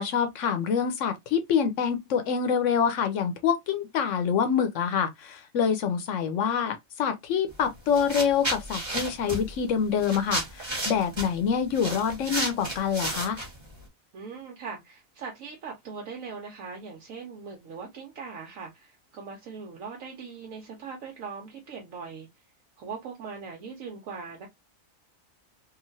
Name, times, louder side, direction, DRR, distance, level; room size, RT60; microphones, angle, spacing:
voice 1, 0.0-13.4, left 7 dB, 70° left, 0.9 m, -26 dB
sound 1, 7.5-7.7 7.9-13.8, right 1 dB, 20° right, 1.1 m, -33 dB
voice 2, 14.1-22.3 22.8-24.5, right 5 dB, 75° right, 1.1 m, -40 dB
2.9 x 2.5 x 2.5 m
omnidirectional pair, 1.4 m